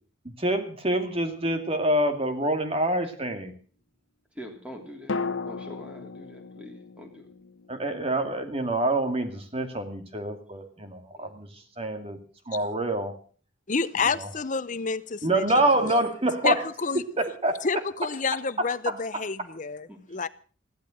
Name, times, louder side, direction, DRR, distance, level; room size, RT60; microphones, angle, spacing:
voice 1, 0.2-3.5 7.7-11.5 11.8-12.2 12.5-13.1 14.1-14.3 15.2-16.6 17.2-17.6 18.9-19.0, right 1 dB, 30° right, 2.4 m, -26 dB
voice 2, 4.3-7.3 11.1-11.3 19.9-20.0, equal, 5° right, 3.3 m, -44 dB
sound 1, 5.1-9.1 9.3-9.4, left 4 dB, 85° left, 1.0 m, -37 dB
voice 3, 13.7-15.9 16.4-17.0 17.6-20.3, left 4 dB, 40° left, 0.8 m, -29 dB
16.0 x 12.0 x 6.4 m
head